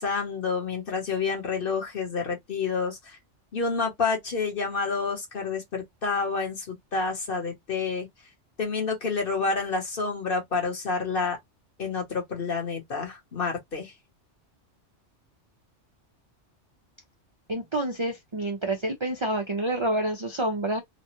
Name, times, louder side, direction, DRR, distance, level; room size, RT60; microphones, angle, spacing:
voice 1, 0.0-3.2 3.5-8.1 8.6-11.4 11.8-13.9, left 4 dB, 50° left, 1.2 m, -29 dB
voice 2, 17.5-20.8, right 1 dB, 50° right, 0.3 m, -28 dB
3.0 x 2.2 x 2.8 m
omnidirectional pair, 1.3 m